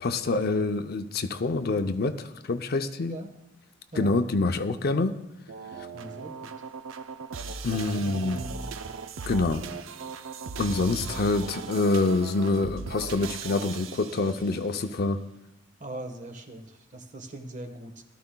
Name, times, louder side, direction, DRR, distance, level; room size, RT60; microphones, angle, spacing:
voice 1, 0.0-3.2 3.9-5.2 7.6-8.4 9.3-9.6 10.6-15.2, left 3 dB, 55° left, 8 dB, 0.6 m, -26 dB
sound 1, 5.5-14.7, right 5 dB, 85° right, 0.5 m, -38 dB
voice 2, 5.9-6.5 8.0-8.7 15.8-18.0, right 1 dB, 40° right, 6 dB, 1.2 m, -40 dB
18.0 x 12.5 x 2.3 m, 0.93 s
head